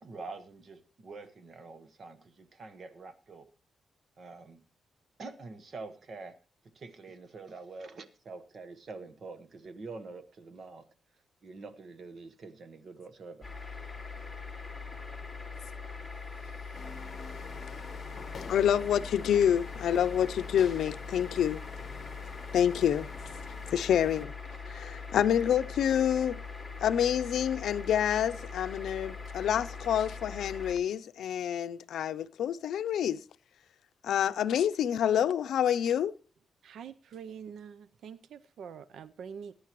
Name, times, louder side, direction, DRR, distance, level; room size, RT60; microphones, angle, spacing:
voice 1, 0.0-3.5 4.2-4.6 5.2-6.3 6.7-10.8 11.4-13.5, right 3 dB, 45° right, 1.1 m, -46 dB
sound 1, 13.4-30.7, left 4 dB, ahead, 3.3 m, -42 dB
sound 2, 16.7-24.2, left 5 dB, 45° left, 1.1 m, -48 dB
voice 2, 18.5-21.6 22.5-23.1 23.7-24.3 24.7-26.4 26.8-33.2 34.0-36.1, left 9 dB, 90° left, 0.5 m, -27 dB
voice 3, 36.6-39.5, right 7 dB, 80° right, 0.5 m, -45 dB
20.5 x 9.8 x 3.0 m
wide cardioid pair, 150°, 0 cm